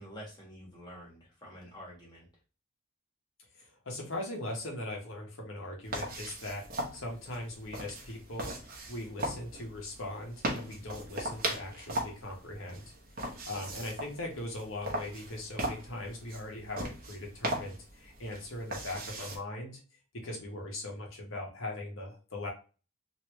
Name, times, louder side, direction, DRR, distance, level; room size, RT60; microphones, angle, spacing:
voice 1, 0.0-2.3, equal, 20° left, -4 dB, 1.4 m, -48 dB
voice 2, 3.5-8.5 8.9-13.0 13.5-19.8 20.2-22.5, left 1 dB, 75° left, 0 dB, 1.2 m, -40 dB
sound 1, 5.8-19.4, right 1 dB, 45° right, 0.9 m, -39 dB
3.2 x 2.8 x 3.1 m, 0.35 s
head